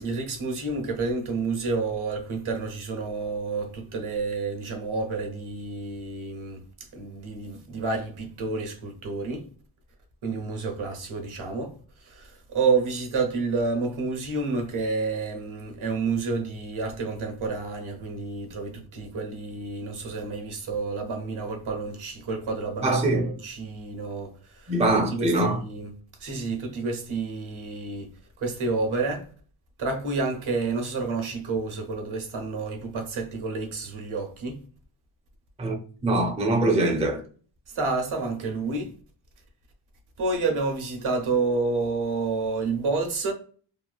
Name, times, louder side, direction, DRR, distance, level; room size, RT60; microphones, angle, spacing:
voice 1, 0.0-6.6 6.9-9.5 10.2-11.7 12.0-24.8 25.1-28.1 28.4-29.3 29.8-34.6 37.7-38.9 40.2-43.3, right 3 dB, 75° right, 1.0 m, -29 dB
voice 2, 22.8-23.3 24.7-25.6 35.6-35.8 36.0-37.2, right 2 dB, 15° right, 0.4 m, -23 dB
2.9 x 2.4 x 2.3 m
wide cardioid pair, 160°, 49 cm